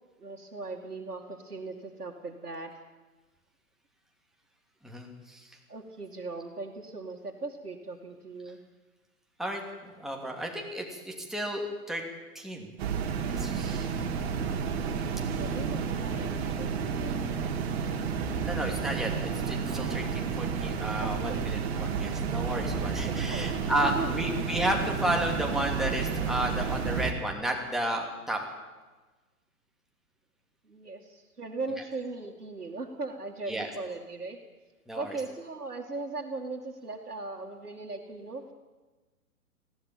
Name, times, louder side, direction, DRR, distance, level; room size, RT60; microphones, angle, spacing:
voice 1, 0.2-2.7 5.7-8.6 15.4-16.7 17.0-17.3 21.0-21.4 23.3-23.5 23.8-24.1 30.7-34.4 34.9-38.4, right 3 dB, 80° right, -2 dB, 2.5 m, -38 dB
voice 2, 4.8-5.6 9.4-11.6 11.9-12.0 12.3-12.7 13.4-13.9 18.4-28.4 31.7-31.8 33.5-33.7 34.9-35.2, right 1 dB, ahead, 0 dB, 2.8 m, -32 dB
sound 1, 12.8-27.1, right 6 dB, 45° right, 2.6 m, -31 dB
19.5 x 16.0 x 8.9 m, 1.2 s
figure-of-eight pair, 115°, 45 cm